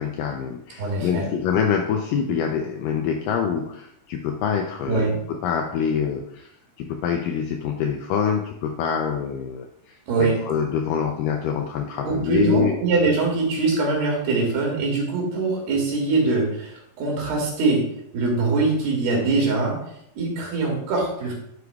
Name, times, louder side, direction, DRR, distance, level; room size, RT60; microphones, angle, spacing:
voice 1, 0.0-6.5 6.8-12.7, left 7 dB, 80° left, 3 dB, 2.0 m, -25 dB
voice 2, 0.8-1.3 4.9-5.2 10.1-10.4 12.1-19.8 20.2-21.3, right 3 dB, 75° right, -1 dB, 4.0 m, -23 dB
9.8 x 7.9 x 2.3 m, 0.75 s
omnidirectional pair, 4.5 m